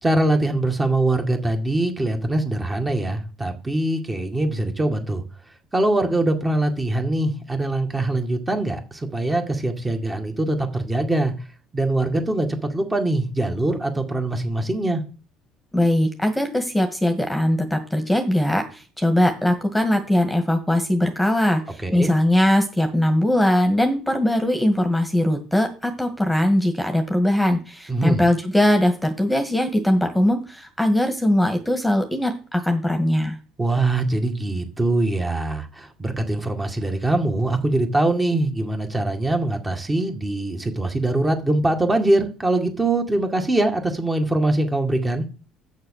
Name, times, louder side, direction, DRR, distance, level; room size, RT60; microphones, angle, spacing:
voice 1, 0.0-5.2 5.7-11.3 11.7-15.0 21.8-22.1 27.9-28.3 33.6-45.3, right 2 dB, 15° right, 2.1 m, -23 dB
voice 2, 15.7-33.4, left 1 dB, 5° left, 1.8 m, -20 dB
8.3 x 6.6 x 6.6 m
supercardioid pair, 100°, 0 cm